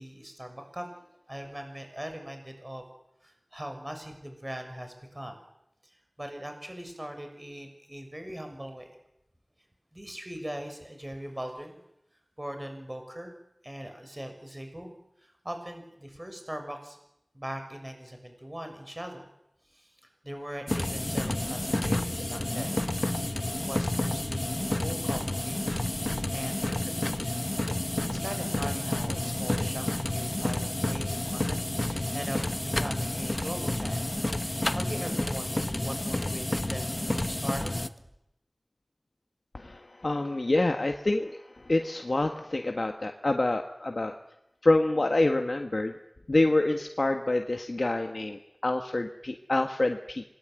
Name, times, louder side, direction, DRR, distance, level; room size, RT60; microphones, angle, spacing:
voice 1, 0.0-2.8 3.2-5.4 5.8-8.9 9.9-11.8 12.4-13.3 13.6-14.9 15.4-17.0 17.3-19.3 19.7-19.9 20.2-22.7 23.6-25.8 26.1-27.3 28.0-31.5 31.8-34.0 34.4-37.7, equal, 25° right, 5 dB, 6.7 m, -40 dB
sound 1, 20.7-37.9, left 1 dB, 35° left, 1.3 m, -30 dB
voice 2, 39.5-44.2 44.6-45.9 46.3-50.2, left 2 dB, 70° left, 4 dB, 1.7 m, -27 dB
27.0 x 21.5 x 9.2 m, 0.85 s
wide cardioid pair, 50°, 0 cm